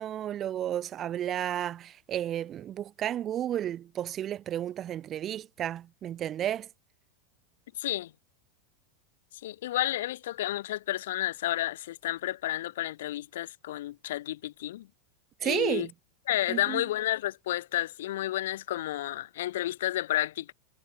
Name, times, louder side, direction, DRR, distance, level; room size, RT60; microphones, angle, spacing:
voice 1, 0.0-6.7 15.4-15.9 16.5-16.9, right 11 dB, 25° right, 2.5 m, -32 dB
voice 2, 7.8-8.1 9.4-14.9 15.4-15.9 16.3-20.5, left 14 dB, 75° left, 7.1 m, -31 dB
supercardioid pair, 155°, 0 cm